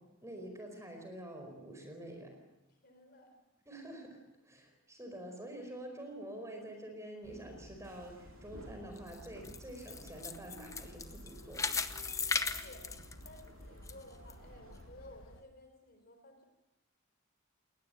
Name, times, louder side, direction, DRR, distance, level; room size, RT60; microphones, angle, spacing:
voice 1, 0.2-2.4 3.7-11.7, right 1 dB, 15° right, 4 dB, 4.7 m, -47 dB
voice 2, 2.8-3.3 12.4-12.8 13.2-16.4, left 1 dB, 45° left, 6 dB, 4.0 m, -55 dB
sound 1, 7.2-15.4, left 1 dB, 70° left, 1.6 m, -56 dB
sound 2, 7.8-14.9, right 1 dB, 80° right, 2.9 m, -54 dB
sound 3, 9.0-13.9 14.3-14.4 15.0-15.1, left 4 dB, 15° left, 0.8 m, -37 dB
21.0 x 19.5 x 7.8 m, 0.95 s
head